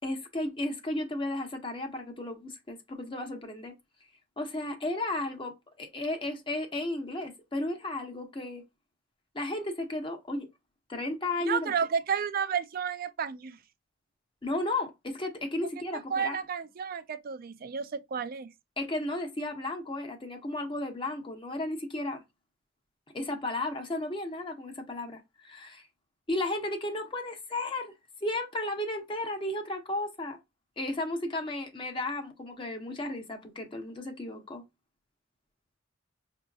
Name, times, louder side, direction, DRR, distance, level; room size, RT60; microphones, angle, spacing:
voice 1, 0.0-3.7 4.4-8.6 9.3-10.5 10.9-11.7 14.4-16.4 18.8-22.2 23.1-25.9 26.3-27.9 28.2-30.4 30.8-34.6, left 2 dB, 25° left, 0.8 m, -34 dB
voice 2, 11.5-13.6 15.9-18.5, right 7 dB, 50° right, 0.4 m, -32 dB
5.5 x 2.8 x 2.3 m
head